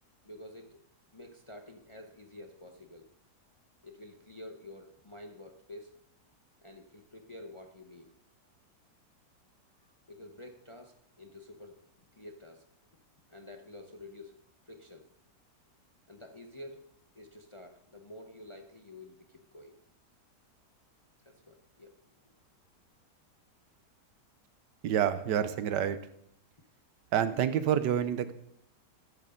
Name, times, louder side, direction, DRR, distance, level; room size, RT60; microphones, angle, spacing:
voice 1, 0.2-0.8 1.1-3.1 3.8-6.0 6.6-8.1 9.8-11.8 12.1-12.7 13.3-15.1 16.1-16.9 17.1-19.8 21.2-22.3, left 1 dB, 25° left, 4 dB, 0.6 m, -49 dB
voice 2, 24.8-26.0 27.1-28.3, right 9 dB, 85° right, 12 dB, 1.4 m, -28 dB
12.0 x 11.0 x 3.8 m, 0.70 s
omnidirectional pair, 1.8 m